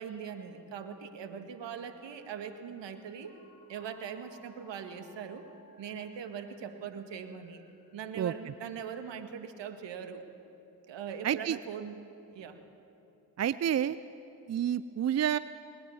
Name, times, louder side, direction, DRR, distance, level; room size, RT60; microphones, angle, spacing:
voice 1, 0.0-3.4 3.7-5.5 5.8-7.6 7.9-10.2 10.9-12.1 12.3-12.6, right 7 dB, 65° right, 7 dB, 1.9 m, -41 dB
sound 1, 1.8-9.1, left 3 dB, 55° left, 3.6 m, -63 dB
voice 2, 11.2-11.6 13.4-14.0 14.5-15.4, right 10 dB, 35° right, 16 dB, 0.6 m, -29 dB
20.5 x 19.0 x 7.2 m, 3.0 s
hypercardioid pair, 40°, 48 cm